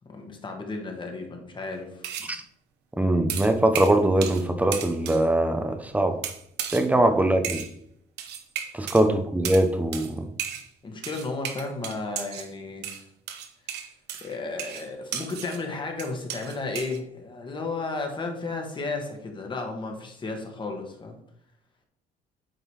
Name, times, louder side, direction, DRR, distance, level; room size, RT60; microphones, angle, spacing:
voice 1, 0.1-2.1 6.9-7.2 8.8-9.0 10.8-12.9 14.2-21.2, left 3 dB, 30° left, 3 dB, 1.7 m, -33 dB
sound 1, 2.0-2.3 3.3-4.5 4.7-5.2 6.2-6.9 7.4-7.7 8.2-9.0 9.4-9.7 9.9-10.1 10.4-10.7 11.0-12.5 12.8-15.6 16.0-17.0, right 9 dB, 80° right, 1.0 m, -34 dB
voice 2, 3.0-6.1 6.7-7.6 8.7-10.2, right 1 dB, 10° right, 7 dB, 0.9 m, -22 dB
9.1 x 3.9 x 4.8 m, 0.72 s
cardioid pair, 110°, 17 cm